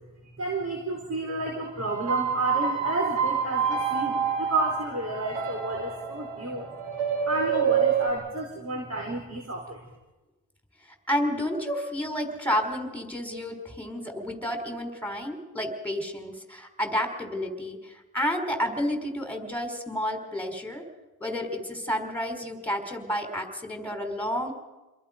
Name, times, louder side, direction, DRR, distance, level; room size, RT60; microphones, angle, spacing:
voice 1, 0.2-6.7 7.3-9.8, right 2 dB, 35° right, 0 dB, 4.9 m, -31 dB
sound 1, 1.9-8.1, right 7 dB, 85° right, 3.1 m, -27 dB
voice 2, 11.1-20.8 21.2-24.5, equal, 5° left, 4 dB, 4.6 m, -30 dB
28.0 x 22.0 x 5.3 m, 1.1 s
supercardioid pair, 60°, 44 cm